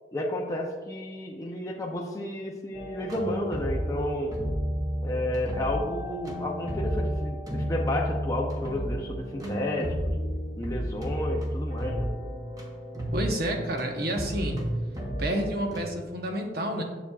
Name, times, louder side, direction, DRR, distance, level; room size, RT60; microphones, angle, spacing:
voice 1, 0.1-4.3 5.0-10.1 10.6-12.1, left 1 dB, 20° left, -2 dB, 0.6 m, -32 dB
sound 1, 2.7-15.8, equal, 20° right, 0.9 m, -32 dB
voice 2, 13.1-14.6 15.2-16.8, right 1 dB, 55° right, 2 dB, 0.9 m, -29 dB
7.1 x 7.1 x 2.3 m, 1.3 s
head